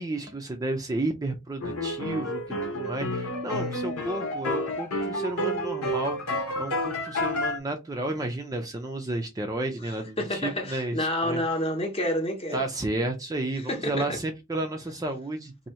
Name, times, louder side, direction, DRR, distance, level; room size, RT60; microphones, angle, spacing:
voice 1, 0.0-11.4 12.5-15.7, right 2 dB, 15° right, 0.4 m, -32 dB
sound 1, 1.6-7.6, left 1 dB, 75° left, 1.0 m, -30 dB
voice 2, 10.2-12.6 13.7-14.2, left 1 dB, 25° left, 0.8 m, -29 dB
2.8 x 2.7 x 4.2 m
head